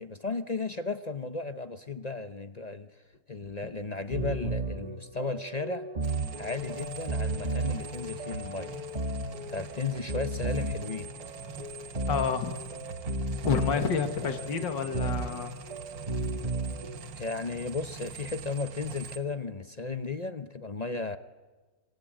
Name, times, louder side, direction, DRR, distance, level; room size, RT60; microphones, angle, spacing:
voice 1, 0.0-2.9 3.3-5.9 6.4-8.7 9.5-11.1 13.7-13.9 17.2-21.2, left 4 dB, 45° left, 10 dB, 0.5 m, -35 dB
sound 1, 4.1-17.0, right 2 dB, 25° right, 1.4 m, -34 dB
sound 2, 6.0-19.2, right 5 dB, 90° right, 2.3 m, -44 dB
voice 2, 12.1-12.5 13.4-15.5, left 6 dB, 80° left, 7 dB, 2.4 m, -29 dB
25.0 x 24.0 x 9.1 m, 1.3 s
omnidirectional pair, 2.0 m